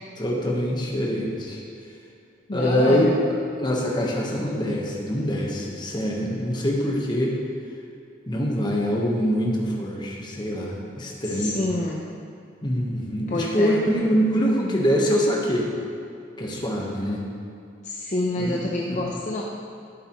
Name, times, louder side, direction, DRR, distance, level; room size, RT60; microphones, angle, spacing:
voice 1, 0.2-1.6 2.5-3.1 3.6-7.4 8.3-11.6 12.6-15.7 16.4-17.3 18.4-18.6 18.9-19.2, equal, 25° left, -2 dB, 1.2 m, -24 dB
voice 2, 2.5-3.1 11.3-12.0 13.3-13.8 17.8-19.4, left 2 dB, 40° left, -2 dB, 0.6 m, -27 dB
12.5 x 8.1 x 3.1 m, 2.5 s
head